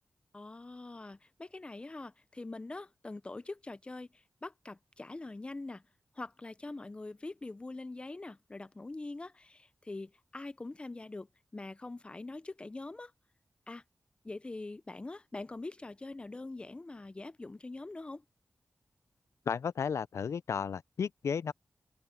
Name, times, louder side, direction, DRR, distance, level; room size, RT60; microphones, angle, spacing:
voice 1, 0.3-5.8 6.1-13.1 13.7-13.8 14.2-18.2, left 2 dB, 20° left, 0.5 m, -44 dB
voice 2, 19.5-21.5, left 6 dB, 85° left, 0.4 m, -33 dB
open air
wide cardioid pair, 135°, 5 cm